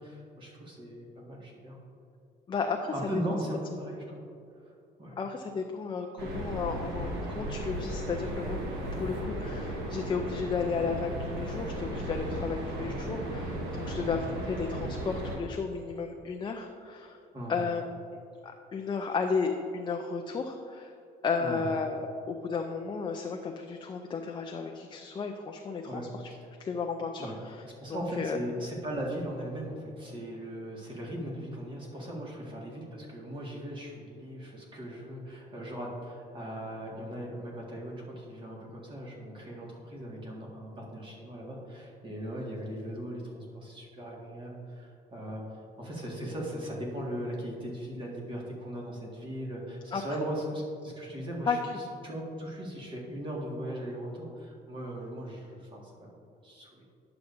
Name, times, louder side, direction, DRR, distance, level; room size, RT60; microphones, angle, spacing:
voice 1, 0.0-1.8 2.9-4.2 4.6-4.7 5.0-5.2 9.5-9.6 13.8-14.0 17.3-17.6 21.4-21.6 25.8-26.4 27.2-27.4 27.6-51.6 52.0-56.1 56.4-56.8, right 1 dB, 30° right, -3 dB, 1.9 m, -38 dB
voice 2, 2.5-3.2 5.2-8.6 8.9-17.2 17.5-17.8 18.4-20.9 21.2-22.0 22.3-26.3 26.6-27.6 27.9-28.4 49.9-50.0 51.4-51.7, left 5 dB, 30° left, 3 dB, 0.5 m, -33 dB
sound 1, 6.2-15.4, right 1 dB, 85° right, 1.3 m, -35 dB
10.5 x 6.8 x 2.7 m, 2.6 s
cardioid pair, 110°, 17 cm